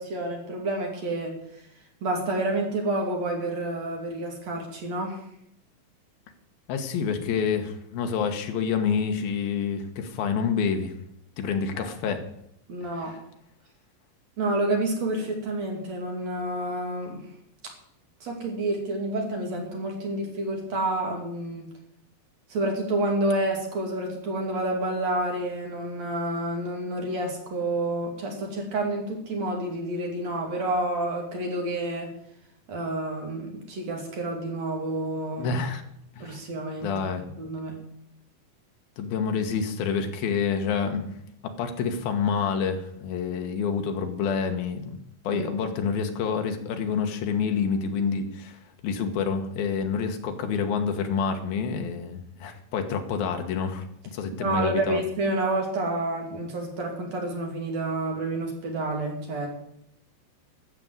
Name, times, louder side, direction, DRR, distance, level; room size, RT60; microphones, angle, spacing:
voice 1, 0.0-1.4 2.0-5.2 12.7-13.1 14.4-17.2 18.2-21.7 22.5-32.1 32.7-35.5 36.2-36.9 37.4-37.8 45.3-45.6 54.4-59.5, right 2 dB, 50° right, 1 dB, 3.6 m, -29 dB
voice 2, 6.7-10.9 11.4-12.2 13.0-13.2 35.4-35.8 36.2-36.4 36.8-37.3 39.0-41.1 41.4-53.8 54.1-55.0, left 6 dB, 90° left, 6 dB, 3.2 m, -28 dB
13.0 x 7.6 x 7.9 m, 0.75 s
omnidirectional pair, 4.1 m